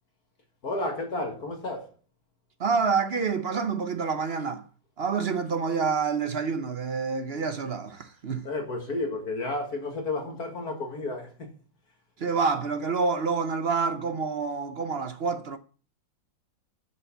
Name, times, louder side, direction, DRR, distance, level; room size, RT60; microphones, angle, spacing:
voice 1, 0.6-1.9 8.4-11.5, left 2 dB, 55° left, 2.4 m, -32 dB
voice 2, 2.6-4.6 5.0-8.5 12.2-15.6, right 5 dB, 50° right, 0.7 m, -27 dB
10.5 x 6.5 x 7.2 m
omnidirectional pair, 2.0 m